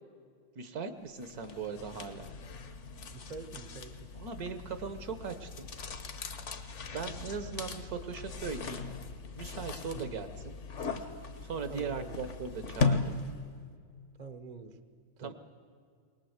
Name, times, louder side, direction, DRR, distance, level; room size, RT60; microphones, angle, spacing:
voice 1, 0.5-2.3 4.1-5.7 6.9-8.9 9.4-10.5 11.4-13.1 15.2-15.3, right 5 dB, 55° right, 10 dB, 1.4 m, -39 dB
sound 1, 1.2-13.6, left 4 dB, 45° left, 1.2 m, -38 dB
voice 2, 3.1-4.1 9.9-10.2 11.7-12.2 14.2-14.8 15.2-15.3, right 4 dB, 30° right, 9 dB, 0.8 m, -45 dB
21.5 x 19.0 x 8.0 m, 2.1 s
omnidirectional pair, 2.1 m